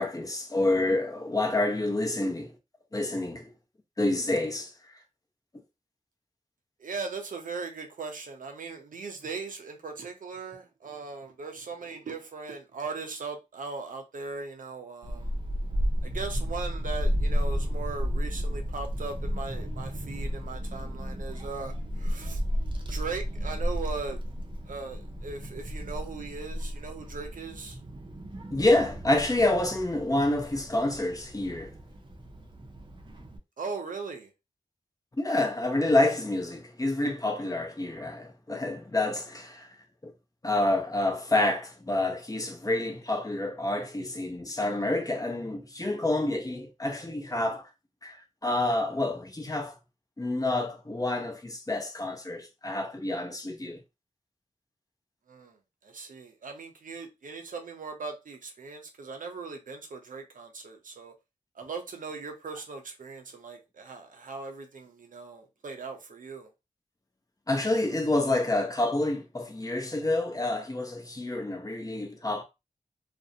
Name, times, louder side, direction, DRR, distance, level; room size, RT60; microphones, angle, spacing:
voice 1, 0.0-2.5 2.9-3.5 4.0-4.7 28.5-31.7 35.2-39.7 40.0-40.1 40.4-47.7 48.0-49.7 50.2-53.8 67.5-72.4, left 2 dB, 25° left, 0.7 m, -28 dB
voice 2, 6.8-15.3 16.0-22.4 22.9-24.2 24.7-27.8 33.6-34.3 55.3-55.6 55.8-61.1 61.6-66.5, right 4 dB, 75° right, 0.6 m, -39 dB
Child speech kid speaking / Wind, 15.0-33.4, equal, 35° right, 0.6 m, -33 dB
2.5 x 2.0 x 2.6 m
cardioid pair, 45°, 14 cm